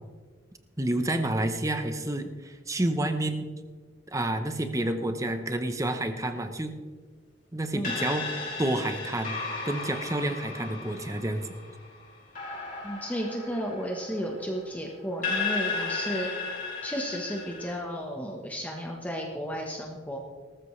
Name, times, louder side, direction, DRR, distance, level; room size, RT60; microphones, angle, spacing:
voice 1, 0.8-3.5 4.1-6.7 7.5-11.5, right 1 dB, 15° right, 8 dB, 0.8 m, -29 dB
sound 1, 7.8-14.7 15.2-17.8, left 4 dB, 45° left, 3.9 m, -35 dB
voice 2, 12.8-16.3 16.8-20.2, equal, 10° left, 0 dB, 1.2 m, -33 dB
18.5 x 13.5 x 3.3 m, 1.5 s
head